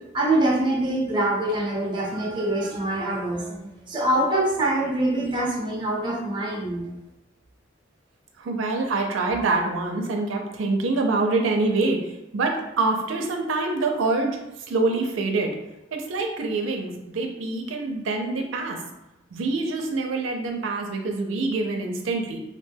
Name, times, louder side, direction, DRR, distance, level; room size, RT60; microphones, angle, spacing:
voice 1, 0.1-6.9, right 1 dB, 25° right, -2 dB, 0.6 m, -24 dB
voice 2, 8.4-14.4 14.7-15.5 15.9-18.8 19.3-22.4, right 3 dB, 90° right, 3 dB, 0.4 m, -25 dB
2.9 x 2.1 x 3.3 m, 0.88 s
head